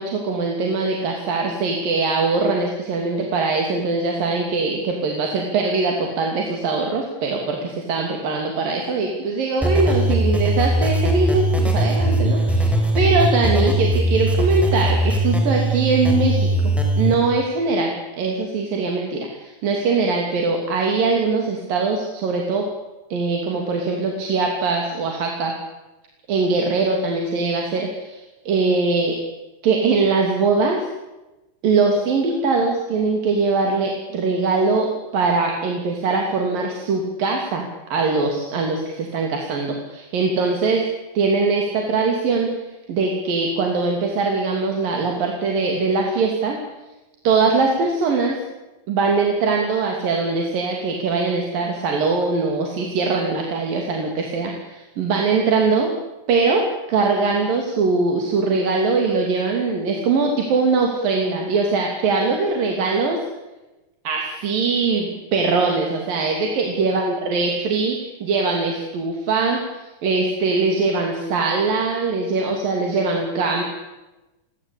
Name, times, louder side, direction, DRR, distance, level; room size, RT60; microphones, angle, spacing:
voice 1, 0.0-16.5 17.0-22.7 23.1-25.6 26.3-28.2 28.5-29.2 29.6-30.9 31.6-40.8 41.1-42.5 42.9-46.6 47.2-48.4 48.9-55.9 56.3-63.2 64.0-73.6, right 4 dB, 75° right, 2 dB, 4.7 m, -21 dB
sound 1, 9.6-17.1, right 1 dB, ahead, 5.2 m, -20 dB
29.5 x 23.5 x 8.7 m, 1.1 s
omnidirectional pair, 4.0 m